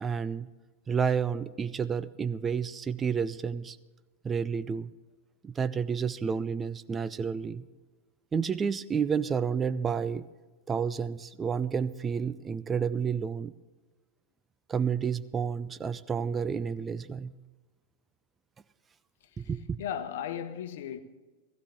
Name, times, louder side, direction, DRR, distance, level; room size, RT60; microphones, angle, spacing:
voice 1, 0.0-0.5 0.9-3.8 4.2-4.9 5.4-7.6 8.3-10.2 10.7-13.5 14.7-17.3 19.4-19.8, right 6 dB, 20° right, 0.4 m, -30 dB
voice 2, 19.8-21.0, left 9 dB, 55° left, 1.0 m, -36 dB
16.0 x 15.5 x 3.6 m
figure-of-eight pair, 90°, 0 cm